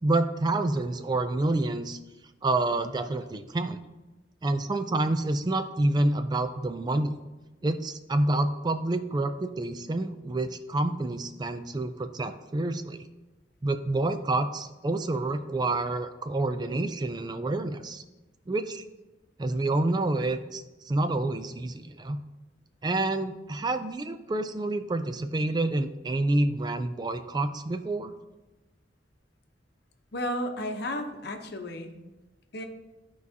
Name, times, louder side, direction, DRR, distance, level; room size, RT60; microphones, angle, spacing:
voice 1, 0.0-2.0 2.4-3.8 4.4-7.1 7.6-13.0 13.6-18.0 18.5-18.8 19.4-22.2 22.8-28.1, right 2 dB, 25° right, 9 dB, 0.4 m, -28 dB
voice 2, 30.1-32.0 32.5-32.7, left 1 dB, 60° left, 5 dB, 0.8 m, -33 dB
12.5 x 4.7 x 2.8 m, 1.1 s
head